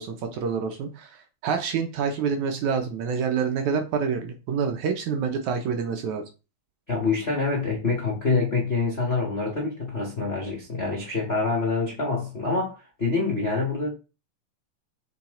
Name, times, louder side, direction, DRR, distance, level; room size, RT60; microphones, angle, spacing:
voice 1, 0.0-6.2, right 6 dB, 70° right, 2.0 m, -27 dB
voice 2, 6.9-13.9, left 3 dB, 40° left, 0.9 m, -26 dB
7.3 x 4.0 x 3.7 m
omnidirectional pair, 3.9 m